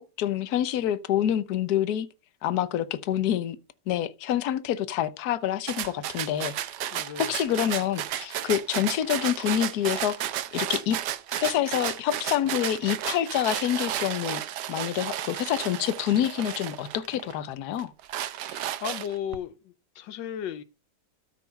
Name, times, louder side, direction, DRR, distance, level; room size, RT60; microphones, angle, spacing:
voice 1, 0.0-2.1 2.4-3.6 3.9-6.5 7.2-11.0 11.3-14.4 14.7-17.9, left 11 dB, 65° left, 1.3 m, -27 dB
sound 1, 5.7-17.3 17.8-19.4, right 11 dB, 75° right, 1.3 m, -33 dB
voice 2, 6.9-7.3 18.3-20.6, left 10 dB, 80° left, 1.4 m, -36 dB
13.0 x 4.8 x 5.3 m
omnidirectional pair, 1.9 m